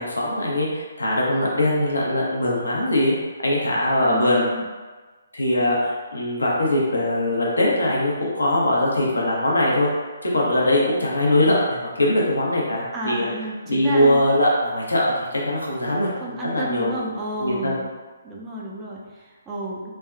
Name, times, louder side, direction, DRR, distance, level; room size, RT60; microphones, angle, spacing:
voice 1, 0.0-3.1 3.4-4.5 5.3-9.9 10.2-13.3 13.7-17.0 17.4-17.7, left 1 dB, 85° left, -4 dB, 0.8 m, -21 dB
voice 2, 4.0-4.6 12.9-14.2 16.1-17.9 18.2-19.9, right 1 dB, 15° right, -4 dB, 0.4 m, -31 dB
3.3 x 2.2 x 2.3 m, 1.3 s
figure-of-eight pair, 145°, 0 cm